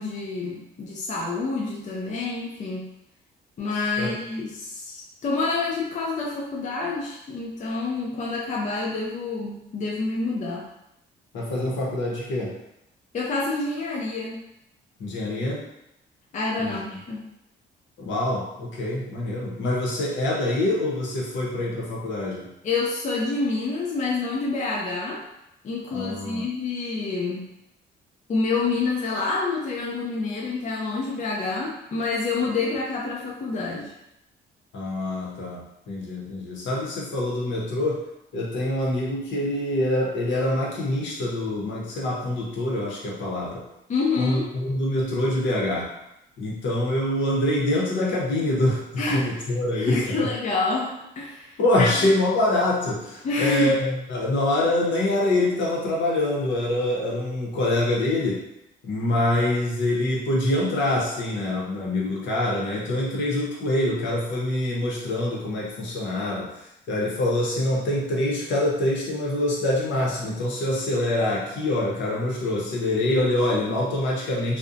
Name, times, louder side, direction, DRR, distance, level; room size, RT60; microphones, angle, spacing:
voice 1, 0.0-2.9 3.6-10.7 13.1-14.4 16.3-17.3 22.6-25.2 25.6-27.5 28.3-33.9 43.9-44.5 49.0-49.2 49.7-51.9 53.2-53.7, left 3 dB, 40° left, -3 dB, 0.5 m, -27 dB
voice 2, 11.3-12.5 15.0-15.6 16.6-16.8 18.0-22.5 25.9-26.5 34.7-38.0 38.3-43.6 44.2-45.9 46.4-50.3 51.6-58.4 58.8-66.5 66.9-74.6, left 1 dB, 70° left, -4 dB, 0.8 m, -25 dB
2.6 x 2.1 x 2.5 m, 0.84 s
cardioid pair, 90°, 20 cm